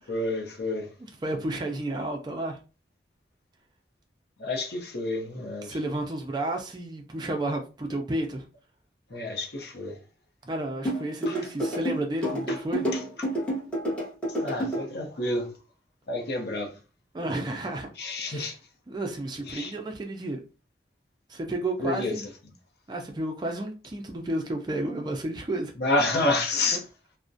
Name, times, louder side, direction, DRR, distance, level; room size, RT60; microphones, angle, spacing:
voice 1, 0.1-0.9 4.4-5.8 9.1-10.0 11.3-11.4 12.5-12.6 12.9-13.0 14.3-15.5 16.1-16.7 18.0-18.6 19.5-19.7 21.8-22.2 25.8-26.8, left 2 dB, 60° left, 0.6 m, -29 dB
voice 2, 1.2-2.6 5.6-8.4 10.4-12.9 17.1-17.9 18.3-18.5 18.9-20.4 21.3-22.2 22.9-25.7, right 1 dB, 25° right, 0.3 m, -31 dB
sound 1, 10.8-14.8, equal, 5° left, 0.8 m, -28 dB
2.3 x 2.0 x 2.5 m
head